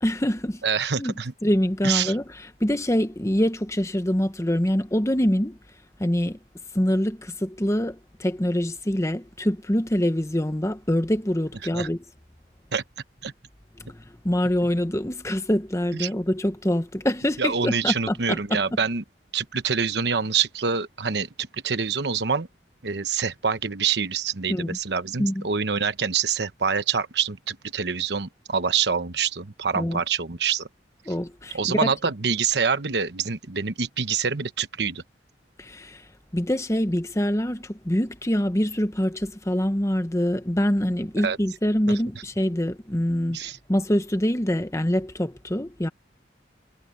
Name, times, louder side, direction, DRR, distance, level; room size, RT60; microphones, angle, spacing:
voice 1, 0.0-0.6 1.0-1.1 1.4-2.2 2.6-5.6 6.0-6.4 6.7-12.0 13.8-18.6 24.5-24.8 25.2-25.4 29.7-30.0 31.1-31.9 35.6-36.0 36.3-43.4 43.7-45.9, equal, 15° left, 1.1 m, -25 dB
voice 2, 0.6-1.3 1.8-2.2 11.7-11.9 12.7-12.8 13.2-13.3 15.9-16.1 17.4-19.0 19.3-22.5 22.8-30.7 31.5-35.0 41.2-41.4 41.9-42.0 43.3-43.6, right 6 dB, 65° right, 1.1 m, -26 dB
head